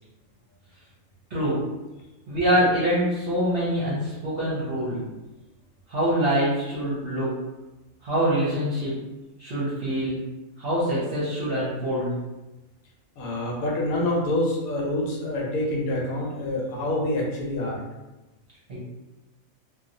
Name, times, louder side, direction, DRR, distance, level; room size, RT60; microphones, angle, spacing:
voice 1, 1.3-1.6 2.3-5.0 5.9-7.4 8.0-9.0 9.4-10.2 10.6-12.1 18.7-18.8, equal, 50° right, -8 dB, 0.9 m, -25 dB
voice 2, 13.1-17.8, left 1 dB, 75° left, -2 dB, 1.2 m, -26 dB
2.9 x 2.3 x 2.6 m, 1.0 s
omnidirectional pair, 1.5 m